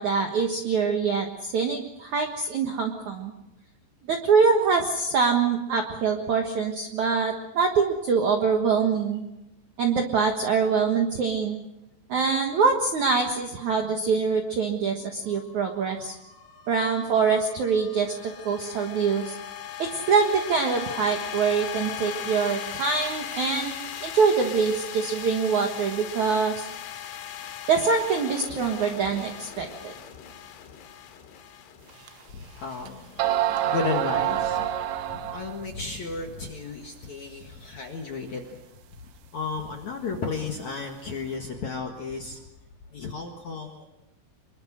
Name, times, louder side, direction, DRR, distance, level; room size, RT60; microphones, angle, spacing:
voice 1, 0.0-3.3 4.1-9.2 9.8-11.6 12.1-16.1 16.7-19.4 19.8-23.7 24.0-26.7 27.7-29.9, right 5 dB, 70° right, 3 dB, 1.8 m, -24 dB
sound 1, 15.2-33.6, left 10 dB, 80° left, 4.3 m, -39 dB
sound 2, 32.1-32.2 32.9-33.0 33.2-35.7, right 11 dB, 90° right, 3.9 m, -26 dB
voice 2, 32.3-38.6 39.3-42.4 42.9-43.9, left 4 dB, 55° left, 2 dB, 2.1 m, -34 dB
26.0 x 22.5 x 6.4 m, 0.93 s
omnidirectional pair, 5.7 m